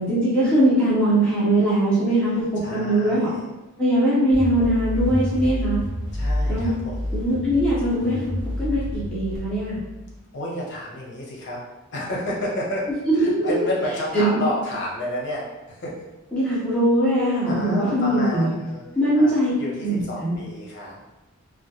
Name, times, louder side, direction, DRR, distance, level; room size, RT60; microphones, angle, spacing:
voice 1, 0.0-2.4 2.7-3.3 3.8-5.8 6.5-6.7 7.1-9.8 13.2-13.6 14.1-14.4 16.3-18.5 19.0-19.5 19.8-20.4, right 1 dB, 5° left, -10 dB, 0.6 m, -21 dB
voice 2, 2.6-3.5 6.1-7.0 10.3-11.6 11.9-12.9 13.1-15.9 16.5-16.6 17.4-18.8 19.2-21.0, left 1 dB, 55° left, -3 dB, 0.7 m, -30 dB
sound 1, 4.3-10.2, left 1 dB, 60° right, 0.7 m, -28 dB
2.2 x 2.1 x 2.8 m, 1.1 s
head